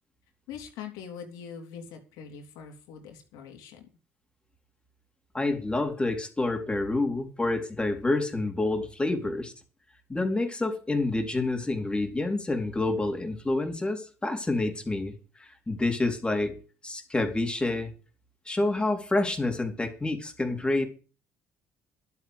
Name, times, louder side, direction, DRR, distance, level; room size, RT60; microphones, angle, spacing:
voice 1, 0.5-3.9, left 7 dB, 80° left, 4 dB, 3.6 m, -43 dB
voice 2, 5.3-9.5 10.1-16.6 16.8-17.9 18.5-20.8, left 2 dB, 15° left, 4 dB, 3.9 m, -28 dB
11.5 x 8.3 x 8.3 m, 0.37 s
supercardioid pair, 75°, 6 cm